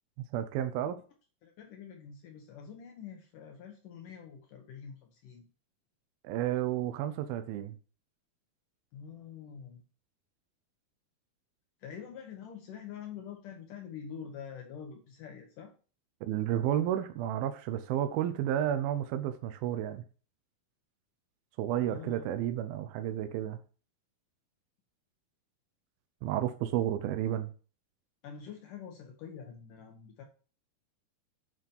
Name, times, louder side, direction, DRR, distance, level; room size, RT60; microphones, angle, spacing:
voice 1, 0.3-1.0 6.2-7.8 16.2-20.0 21.6-23.6 26.2-27.5, right 11 dB, 80° right, 2.5 m, -31 dB
voice 2, 1.4-5.5 8.9-9.8 11.8-15.7 21.9-22.3 28.2-30.2, left 7 dB, 65° left, 2.5 m, -46 dB
9.3 x 5.9 x 5.4 m
omnidirectional pair, 4.4 m